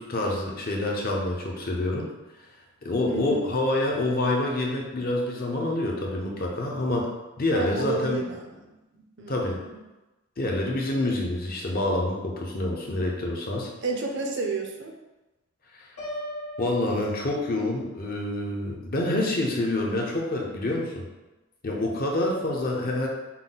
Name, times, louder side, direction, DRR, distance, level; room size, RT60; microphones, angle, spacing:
voice 1, 0.0-2.1 2.8-7.1 7.4-8.2 9.3-9.6 10.4-13.7 15.7-15.9 16.6-21.1 21.6-23.1, left 1 dB, 40° left, -1 dB, 0.7 m, -27 dB
voice 2, 3.1-3.5 7.5-9.7 13.8-15.0, right 3 dB, 50° right, 2 dB, 0.6 m, -32 dB
Piano, 16.0-17.9, equal, 85° left, 1.5 m, -38 dB
5.7 x 2.2 x 3.9 m, 1.1 s
head